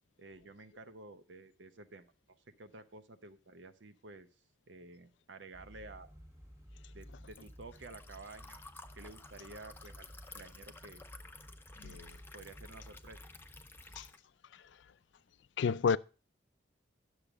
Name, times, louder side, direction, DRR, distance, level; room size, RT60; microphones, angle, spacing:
voice 1, 0.2-2.1 2.5-4.3 4.7-6.1 6.9-8.7 9.0-10.1 10.3-11.0 11.8-13.2, right 3 dB, 70° right, 0.7 m, -52 dB
sound 1, 5.5-14.1, equal, 15° right, 1.5 m, -54 dB
Liquid, 5.9-14.2, left 3 dB, 10° left, 0.5 m, -55 dB
voice 2, 15.6-16.0, left 6 dB, 70° left, 0.4 m, -30 dB
10.5 x 6.5 x 5.0 m
head